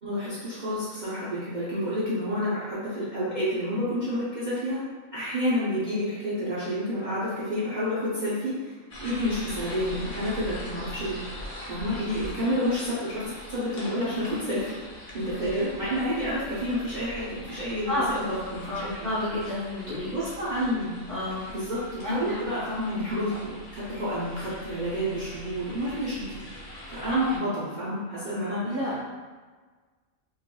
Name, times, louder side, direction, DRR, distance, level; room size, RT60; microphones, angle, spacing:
voice 1, 0.0-11.2 11.7-14.8 15.1-19.1 20.0-21.0 21.5-26.4 26.9-28.8, equal, 45° right, -11 dB, 0.8 m, -29 dB
sound 1, 8.9-27.4, equal, 50° left, 0.4 m, -42 dB
voice 2, 18.4-20.1 20.4-20.5 21.1-21.4 22.0-22.4 28.6-29.0, left 1 dB, 15° left, -11 dB, 0.9 m, -30 dB
3.0 x 2.4 x 2.2 m, 1.4 s
omnidirectional pair, 1.3 m